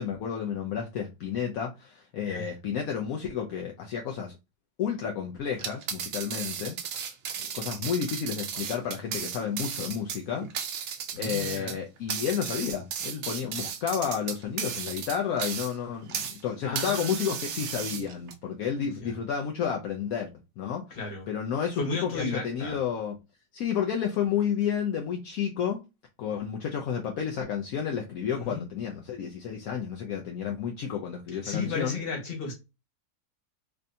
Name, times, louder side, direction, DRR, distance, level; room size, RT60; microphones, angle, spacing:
voice 1, 0.0-4.3 4.8-6.8 7.5-10.5 11.2-20.3 20.6-21.0 21.3-23.1 23.5-25.8 26.2-32.0, left 8 dB, 70° left, 1.0 m, -31 dB
sound 1, 5.5-16.4 16.7-18.3, right 8 dB, 70° right, 0.6 m, -35 dB
voice 2, 11.1-11.8 16.6-18.0 18.8-19.2 20.9-21.3 21.8-22.8 28.3-28.7 31.4-32.5, left 3 dB, 40° left, 1.3 m, -35 dB
3.3 x 2.7 x 2.6 m
omnidirectional pair, 1.7 m